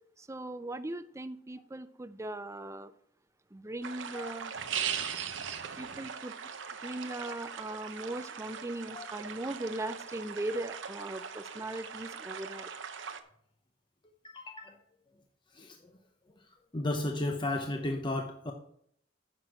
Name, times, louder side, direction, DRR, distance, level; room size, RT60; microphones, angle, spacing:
voice 1, 0.3-2.9 3.5-4.5 5.8-6.3 6.8-12.7, right 1 dB, 15° right, 12 dB, 0.5 m, -39 dB
sound 1, 3.8-13.2, right 7 dB, 75° right, 0.8 m, -40 dB
voice 2, 14.2-14.8 15.5-15.8 16.7-18.5, left 1 dB, 25° left, 3 dB, 0.8 m, -34 dB
9.8 x 6.1 x 5.9 m, 0.68 s
head